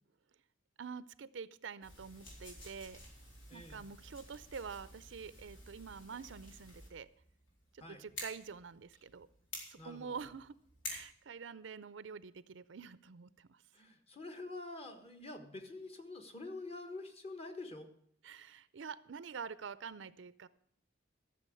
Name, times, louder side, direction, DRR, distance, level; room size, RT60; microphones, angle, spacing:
voice 1, 0.8-3.0 3.5-7.1 7.7-9.3 9.7-10.6 10.9-13.6 18.2-20.5, right 6 dB, 70° right, 17 dB, 0.5 m, -47 dB
sound 1, 1.8-11.2, left 1 dB, 85° left, 4.2 m, -50 dB
voice 2, 3.5-3.9 7.8-8.1 9.8-10.3 13.7-17.9, left 2 dB, 30° left, 6 dB, 1.5 m, -47 dB
13.0 x 7.1 x 7.7 m, 0.68 s
head